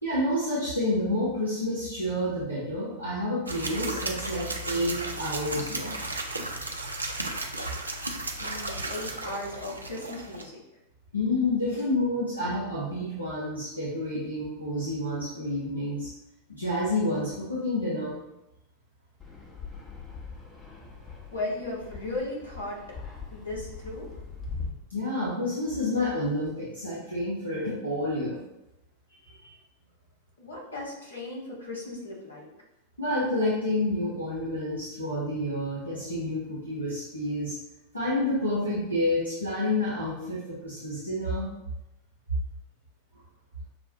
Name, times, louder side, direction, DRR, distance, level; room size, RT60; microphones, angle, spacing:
voice 1, 0.0-6.0 11.1-16.1 16.5-18.2 24.9-28.4 29.2-29.5 33.0-37.5 37.9-41.5, left 1 dB, 85° left, -9 dB, 1.0 m, -29 dB
sound 1, 3.5-10.4, right 2 dB, 80° right, 0.4 m, -34 dB
voice 2, 8.4-10.6 11.7-11.8 21.3-22.8 23.3-24.2 30.4-32.5, left 2 dB, 70° left, -4 dB, 1.3 m, -36 dB
Fixed-wing aircraft airplane, 19.2-24.7, left 5 dB, 20° left, 0.8 m, -41 dB
6.0 x 2.2 x 2.8 m, 0.89 s
figure-of-eight pair, 90°, 0 cm